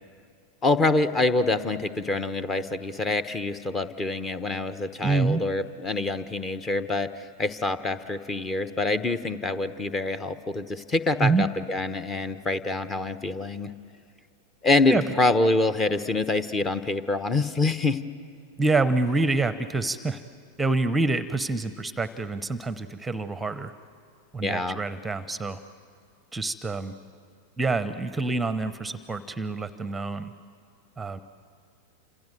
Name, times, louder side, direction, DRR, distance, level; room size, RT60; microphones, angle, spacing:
voice 1, 0.6-13.7 14.6-18.0 24.4-24.8, left 2 dB, 20° left, 13 dB, 1.1 m, -26 dB
voice 2, 5.0-5.4 11.2-11.5 14.9-15.0 18.6-20.2 20.6-23.7 24.3-25.6 26.3-26.9 27.6-30.3 31.0-31.2, right 3 dB, 10° right, 13 dB, 0.9 m, -26 dB
29.0 x 26.5 x 7.8 m, 2.3 s
figure-of-eight pair, 90°, 0 cm